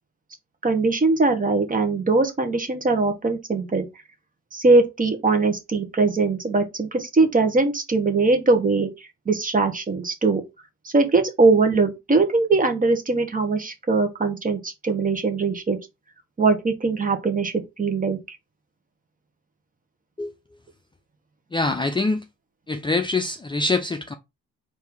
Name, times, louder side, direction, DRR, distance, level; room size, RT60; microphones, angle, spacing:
voice 1, 0.6-3.8 4.5-8.9 9.3-10.4 10.8-15.8 16.4-18.4, right 3 dB, 25° right, 1.1 m, -21 dB
voice 2, 21.5-22.2 22.7-24.1, left 3 dB, 15° left, 0.5 m, -24 dB
4.4 x 2.8 x 3.5 m
cardioid pair, 90°, 30 cm